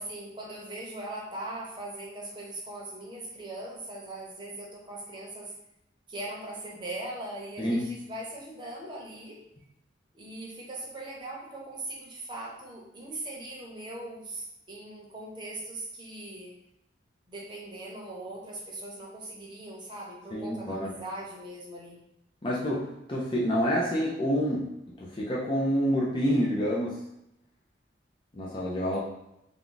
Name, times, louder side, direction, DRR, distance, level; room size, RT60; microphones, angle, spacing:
voice 1, 0.0-5.5 6.1-9.4 10.1-16.5 17.3-22.0, right 1 dB, 25° right, -3 dB, 0.8 m, -40 dB
voice 2, 7.6-8.0 20.3-20.9 22.4-24.7 25.0-27.0 28.3-29.0, equal, 25° left, -5 dB, 0.5 m, -28 dB
3.6 x 2.3 x 3.9 m, 0.81 s
head